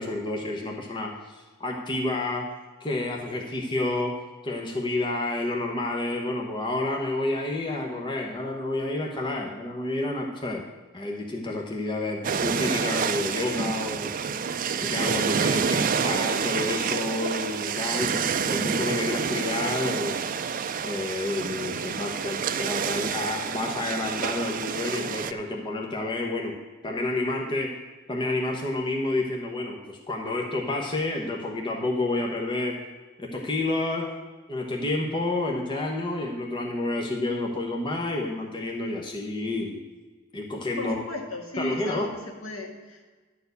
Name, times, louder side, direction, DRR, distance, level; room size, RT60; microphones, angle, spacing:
voice 1, 0.0-2.4 2.8-4.2 4.4-10.6 10.9-14.5 14.8-20.2 20.8-26.6 26.8-27.8 28.1-32.7 33.2-34.1 34.5-39.8 40.3-41.0 41.6-42.1, left 2 dB, 20° left, 0 dB, 1.0 m, -29 dB
sound 1, 12.2-25.3, right 6 dB, 40° right, 0.4 m, -28 dB
voice 2, 40.8-43.1, left 2 dB, 70° left, 0 dB, 2.0 m, -35 dB
11.0 x 4.5 x 8.1 m, 1.3 s
head